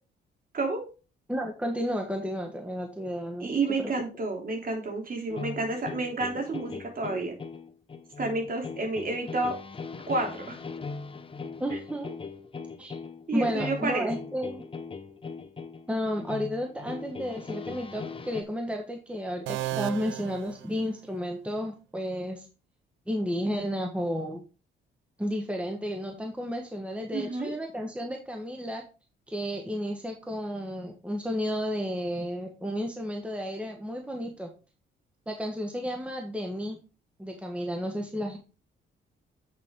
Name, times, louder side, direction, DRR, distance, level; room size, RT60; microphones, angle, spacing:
voice 1, 0.5-0.9 3.4-7.3 8.2-9.6 10.1-10.6 13.3-14.1 27.1-27.5, right 3 dB, 45° right, 1 dB, 3.5 m, -30 dB
voice 2, 1.3-3.5 3.8-3.9 11.6-12.1 12.8-13.0 13.3-14.6 15.9-22.5 23.1-24.4 25.2-28.8 29.3-34.5 35.3-36.8 37.2-38.4, equal, 5° right, 2 dB, 1.4 m, -32 dB
sound 1, 5.3-18.4, left 4 dB, 25° left, 0.8 m, -40 dB
sound 2, 19.5-21.4, right 15 dB, 80° right, 0.5 m, -35 dB
7.4 x 6.8 x 3.8 m, 0.33 s
cardioid pair, 90°, 20 cm